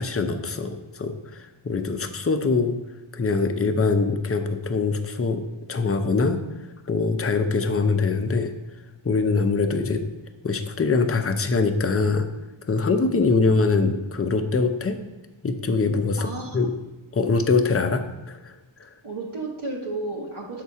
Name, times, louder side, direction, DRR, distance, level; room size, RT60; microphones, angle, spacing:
voice 1, 0.0-2.8 3.1-5.4 5.7-6.4 6.9-8.5 9.0-10.0 10.4-12.3 12.6-15.0 15.4-16.3 16.5-16.7 17.1-18.0 18.3-18.5 18.8-18.9, left 4 dB, 30° left, 7 dB, 0.5 m, -23 dB
voice 2, 16.2-16.6 17.5-17.9 19.0-20.6, right 2 dB, 80° right, -3 dB, 1.3 m, -33 dB
6.5 x 4.1 x 4.7 m, 1.1 s
wide cardioid pair, 55°, 48 cm